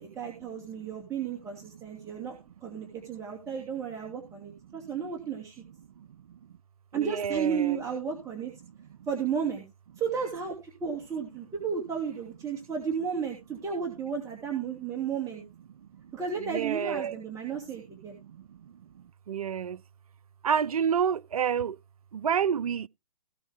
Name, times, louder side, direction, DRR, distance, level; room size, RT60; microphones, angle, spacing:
voice 1, 0.0-5.6 6.9-8.5 9.1-9.6 10.0-15.4 16.1-18.2, right 6 dB, 15° right, 2.6 m, -33 dB
voice 2, 6.9-7.8 16.4-17.2 18.1-18.7 19.3-19.8 20.4-21.8 22.1-22.9, right 7 dB, 75° right, 0.5 m, -29 dB
17.5 x 6.3 x 3.6 m
figure-of-eight pair, 125°, 19 cm